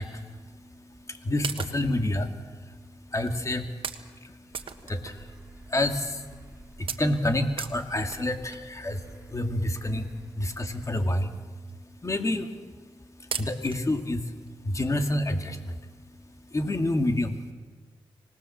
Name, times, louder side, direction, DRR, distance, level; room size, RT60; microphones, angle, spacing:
voice 1, 0.0-17.5, left 1 dB, 35° left, 5 dB, 2.4 m, -30 dB
sound 1, 0.9-1.1 1.4-2.0 2.7-2.8 3.3-3.5 3.8-4.1 4.5-5.4 5.8-5.9 6.3-6.5 6.9-8.7 9.7-9.8 10.4-10.5 10.8-11.0 11.3-11.4 11.7-11.8 12.5-12.9 13.3-14.0 14.5-14.6 14.9-15.0, right 6 dB, 75° right, 1.3 m, -37 dB
sound 2, 4.5-10.9, right 2 dB, 10° right, 5.5 m, -51 dB
25.5 x 19.5 x 7.4 m, 1.4 s
cardioid pair, 65°, 9 cm